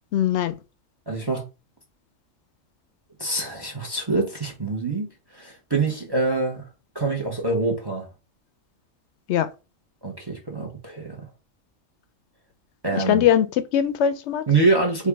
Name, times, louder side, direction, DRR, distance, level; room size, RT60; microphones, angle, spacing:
voice 1, 0.1-0.5 9.3-9.5 12.9-14.4, left 10 dB, 70° left, 0.8 m, -21 dB
voice 2, 1.1-1.4 3.2-5.1 5.3-6.7 6.9-8.1 10.0-11.2 12.8-13.3 14.5-15.1, right 3 dB, 20° right, 0.9 m, -25 dB
4.6 x 2.6 x 3.4 m
omnidirectional pair, 1.3 m